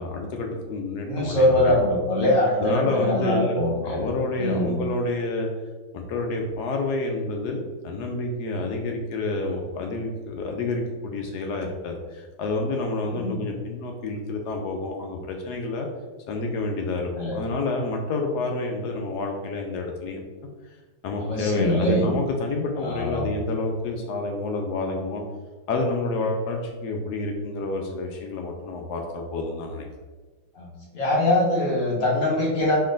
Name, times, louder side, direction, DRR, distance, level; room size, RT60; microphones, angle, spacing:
voice 1, 0.0-1.8 2.6-5.5 5.9-15.9 16.3-20.2 21.0-25.2 25.7-29.9, left 2 dB, 75° left, 2 dB, 0.9 m, -28 dB
voice 2, 1.1-4.1 4.4-4.8 13.2-13.4 17.2-17.4 21.2-22.1 22.8-23.3 30.5-30.7 30.9-32.8, left 1 dB, 50° left, -4 dB, 1.2 m, -23 dB
4.4 x 3.1 x 3.7 m, 1.3 s
omnidirectional pair, 2.2 m